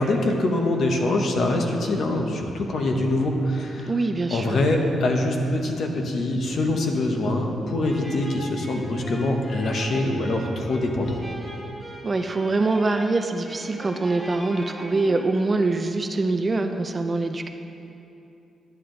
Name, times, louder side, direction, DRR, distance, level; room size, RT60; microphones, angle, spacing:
voice 1, 0.0-3.9 4.3-11.2, left 2 dB, 50° left, 2 dB, 1.0 m, -24 dB
voice 2, 3.9-4.6 12.0-17.5, right 3 dB, 25° right, 6 dB, 0.4 m, -24 dB
sound 1, 7.8-15.9, equal, 5° left, 1.0 m, -40 dB
11.0 x 9.3 x 3.9 m, 2.8 s
wide cardioid pair, 160°, 0 cm